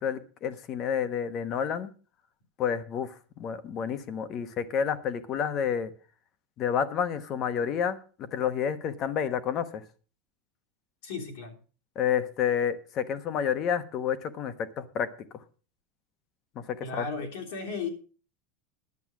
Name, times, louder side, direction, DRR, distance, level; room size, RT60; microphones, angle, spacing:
voice 1, 0.0-1.9 2.6-5.9 6.6-9.8 12.0-15.1 16.7-17.1, left 8 dB, 35° left, 13 dB, 1.0 m, -29 dB
voice 2, 11.0-11.6 16.8-17.9, left 5 dB, 70° left, 1 dB, 3.2 m, -35 dB
11.0 x 7.9 x 6.0 m, 0.38 s
supercardioid pair, 165°, 0 cm